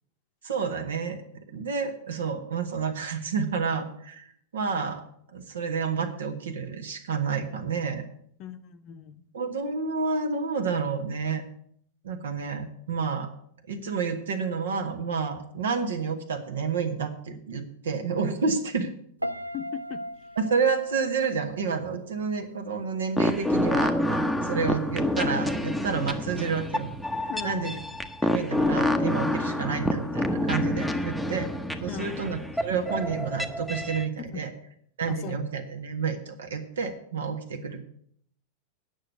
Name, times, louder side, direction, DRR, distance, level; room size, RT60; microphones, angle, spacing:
voice 1, 0.4-1.2 1.5-8.0 9.3-11.4 12.0-13.3 13.7-18.9 20.4-26.9 27.2-27.8 28.2-31.5 31.8-34.5 35.0-37.8, right 5 dB, 65° right, 8 dB, 1.3 m, -30 dB
voice 2, 8.4-9.2 19.5-20.0 27.3-27.8 31.9-32.2 34.2-34.4 35.1-35.3, left 9 dB, 40° left, 10 dB, 0.8 m, -38 dB
Piano, 19.2-22.3 22.6-23.0, equal, 85° right, 0.5 m, -37 dB
sound 1, 23.2-34.1, left 1 dB, ahead, 0.8 m, -28 dB
9.2 x 6.5 x 7.9 m, 0.66 s
figure-of-eight pair, 90°, 0 cm